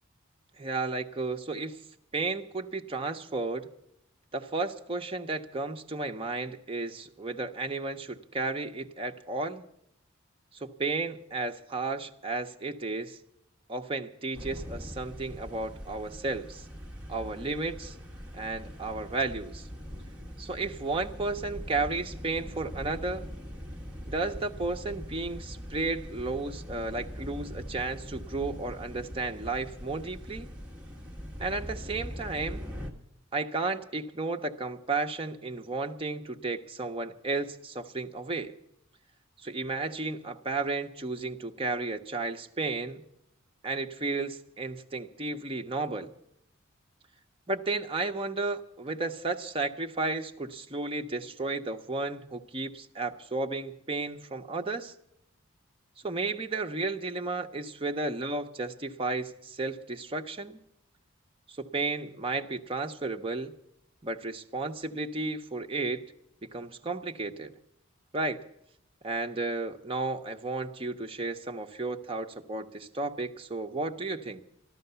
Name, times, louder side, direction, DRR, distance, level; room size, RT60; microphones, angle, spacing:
voice 1, 0.6-1.8 2.1-3.7 4.3-9.6 10.6-13.2 13.7-16.6 17.1-17.9 18.3-19.7 20.4-23.3 24.1-30.5 31.4-32.6 33.3-38.5 39.4-43.0 43.6-46.1 47.5-54.9 56.0-60.6 61.6-63.5 64.0-66.0 66.4-67.5 68.1-68.4 69.0-74.4, right 3 dB, 25° right, 4 dB, 0.7 m, -33 dB
sound 1, 14.3-32.9, equal, 5° right, 1.4 m, -42 dB
13.5 x 12.5 x 6.8 m, 0.77 s
head